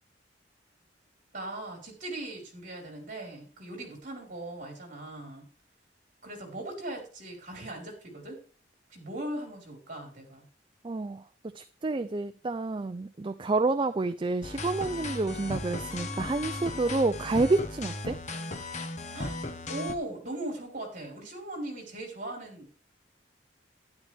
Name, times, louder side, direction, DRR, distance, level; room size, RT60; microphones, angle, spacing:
voice 1, 1.3-5.5 6.2-8.4 8.9-10.4 19.1-19.4 19.7-22.8, right 1 dB, 45° right, 0 dB, 5.0 m, -39 dB
voice 2, 10.8-11.2 11.5-18.2, right 3 dB, 25° right, 10 dB, 0.4 m, -29 dB
sound 1, 14.4-19.9, left 2 dB, 40° left, 1.2 m, -36 dB
12.0 x 11.0 x 3.5 m, 0.39 s
head